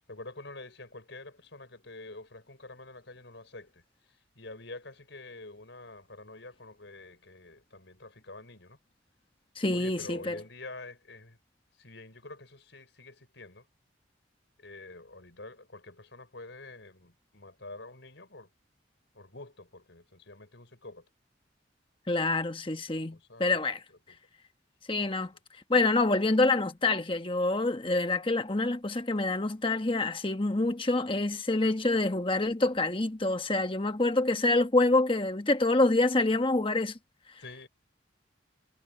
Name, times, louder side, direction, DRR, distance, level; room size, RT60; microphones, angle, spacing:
voice 1, 0.0-8.8 9.7-11.4 11.8-13.7 14.6-18.5 19.1-21.1 22.9-24.2 37.4-37.7, left 2 dB, 70° left, 5.3 m, -47 dB
voice 2, 9.6-10.4 22.1-23.8 24.9-25.3 25.7-37.0, left 2 dB, 25° left, 1.2 m, -26 dB
head